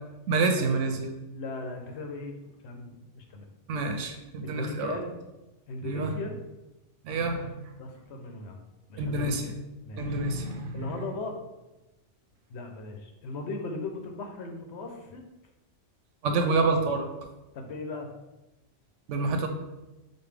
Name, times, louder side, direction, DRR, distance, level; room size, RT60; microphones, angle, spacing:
voice 1, 0.3-1.1 3.7-5.0 5.8-6.1 7.0-7.6 9.0-9.5 10.0-10.9 16.2-17.1 19.1-19.5, right 3 dB, 85° right, 5 dB, 0.9 m, -27 dB
voice 2, 1.3-2.4 2.6-3.5 4.4-5.2 5.7-6.4 7.8-8.6 8.9-9.3 9.8-10.1 10.7-11.4 12.5-15.2 16.5-16.6 17.5-18.1, left 3 dB, 70° left, 3 dB, 0.8 m, -38 dB
5.3 x 2.2 x 3.2 m, 1.0 s
omnidirectional pair, 1.2 m